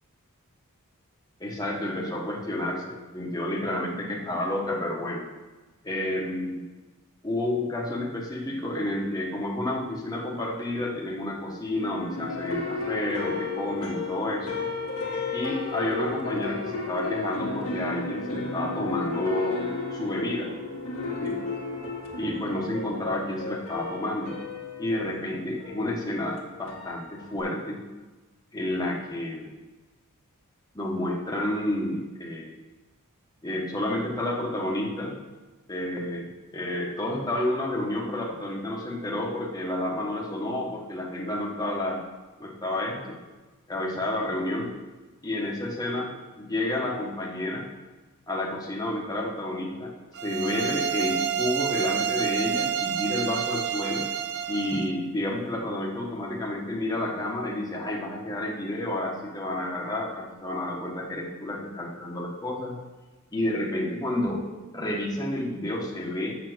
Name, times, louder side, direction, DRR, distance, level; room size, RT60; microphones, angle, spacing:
voice 1, 1.4-5.2 5.8-6.6 7.2-14.7 15.3-19.6 19.9-20.5 21.2-21.4 22.2-24.3 24.8-27.8 28.5-29.5 30.7-32.5 33.4-35.2 35.7-36.3 36.5-42.0 42.4-43.2 43.7-44.7 45.2-46.1 46.4-47.7 48.3-49.9 50.2-54.1 54.5-62.7 63.3-64.4 64.7-66.4, left 1 dB, 20° left, -2 dB, 1.3 m, -30 dB
sound 1, 11.8-27.4, left 3 dB, 70° left, 1.9 m, -34 dB
sound 2, 50.1-54.9, right 8 dB, 50° right, 0.6 m, -29 dB
7.3 x 7.0 x 6.2 m, 1.2 s
head